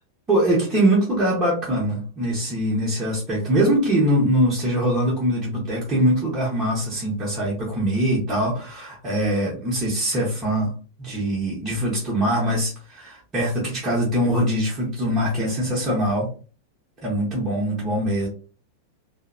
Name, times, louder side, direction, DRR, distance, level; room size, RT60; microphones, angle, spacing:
voice 1, 0.3-10.7 11.0-16.3 17.0-18.3, right 1 dB, 20° right, -6 dB, 0.9 m, -22 dB
2.7 x 2.0 x 2.4 m, 0.37 s
figure-of-eight pair, 90°, 0 cm